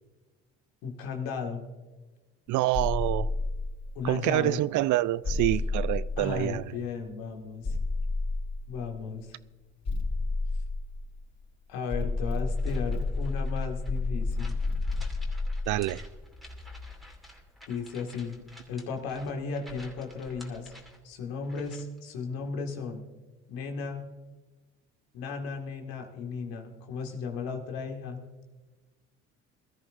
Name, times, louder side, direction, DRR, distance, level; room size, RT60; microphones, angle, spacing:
voice 1, 0.8-1.6 4.0-4.6 6.2-7.8 8.7-9.4 11.7-14.6 17.7-18.4 18.7-20.7 21.0-23.0 23.5-24.1 25.1-28.2, left 5 dB, 75° left, 2.0 m, -35 dB
voice 2, 2.5-3.3 4.0-6.8 15.7-16.0, right 16 dB, 60° right, 0.5 m, -27 dB
sound 1, 2.7-4.2 5.2-6.8 7.6-9.0 9.8-11.4 11.9-17.2, left 3 dB, 45° left, 4.4 m, -31 dB
sound 2, 12.5-22.0, equal, ahead, 2.6 m, -52 dB
21.5 x 13.5 x 2.6 m
hypercardioid pair, 55°, 36 cm